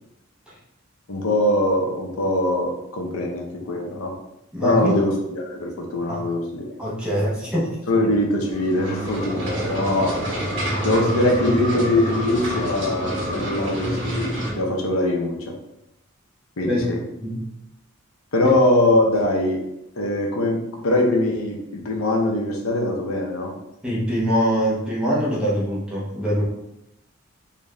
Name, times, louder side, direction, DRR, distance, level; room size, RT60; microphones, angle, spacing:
voice 1, 1.1-4.1 4.6-6.7 7.9-10.2 10.8-15.4 16.6-17.0 18.3-19.6 20.0-23.5, left 1 dB, 80° left, 1 dB, 0.7 m, -22 dB
voice 2, 4.5-4.9 6.1-6.2 6.8-7.8 16.6-16.8 17.2-17.4 18.4-18.5 23.8-26.5, equal, 5° right, -7 dB, 0.8 m, -23 dB
sound 1, 8.4-14.5, equal, 60° right, 1.3 m, -27 dB
3.9 x 2.5 x 3.2 m, 0.87 s
head